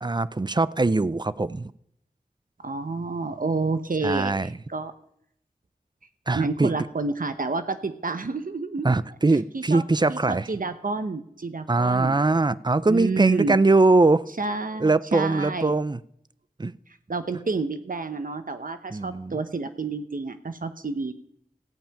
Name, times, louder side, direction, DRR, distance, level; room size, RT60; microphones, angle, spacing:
voice 1, 0.0-1.7 4.0-4.5 6.3-6.7 8.8-10.5 11.7-14.2 14.8-16.0 16.6-16.7 18.9-19.3, right 3 dB, 30° right, 17 dB, 0.5 m, -22 dB
voice 2, 2.6-4.9 6.3-8.9 9.5-9.8 10.1-12.2 12.8-13.6 14.4-15.7 17.1-21.1, right 3 dB, 65° right, 10 dB, 0.8 m, -29 dB
15.0 x 5.5 x 8.7 m, 0.72 s
wide cardioid pair, 40°, 15 cm